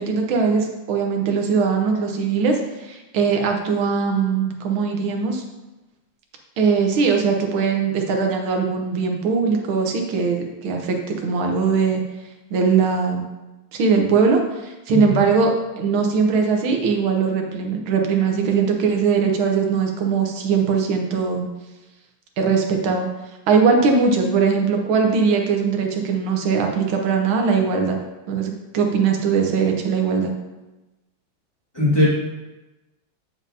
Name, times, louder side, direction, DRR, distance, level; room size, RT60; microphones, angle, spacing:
voice 1, 0.0-5.4 6.6-12.0 12.5-13.3 13.7-21.5 22.4-23.1 23.5-28.0 28.3-30.3, right 5 dB, 85° right, 2 dB, 1.8 m, -20 dB
voice 2, 31.7-32.1, left 2 dB, 15° left, -8 dB, 1.9 m, -19 dB
7.3 x 6.9 x 2.8 m, 1.1 s
omnidirectional pair, 2.2 m